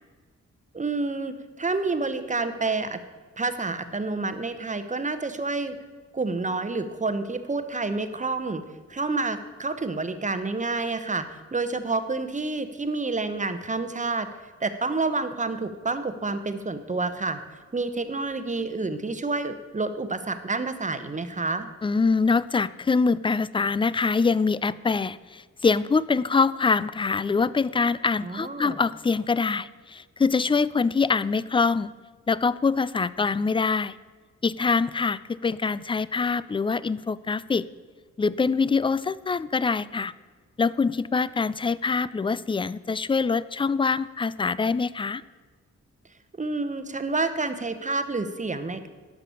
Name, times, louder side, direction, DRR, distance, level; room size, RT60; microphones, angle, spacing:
voice 1, 0.7-3.0 3.4-5.8 6.1-8.6 8.9-14.3 14.6-17.4 17.7-21.7 28.2-28.8 46.4-48.9, right 3 dB, 25° right, 10 dB, 0.9 m, -29 dB
voice 2, 21.8-31.9 32.3-34.0 34.4-37.7 38.2-40.1 40.6-45.2, left 4 dB, 20° left, 18 dB, 0.3 m, -24 dB
12.0 x 5.9 x 7.0 m, 1.4 s
cardioid pair, 75°, 29 cm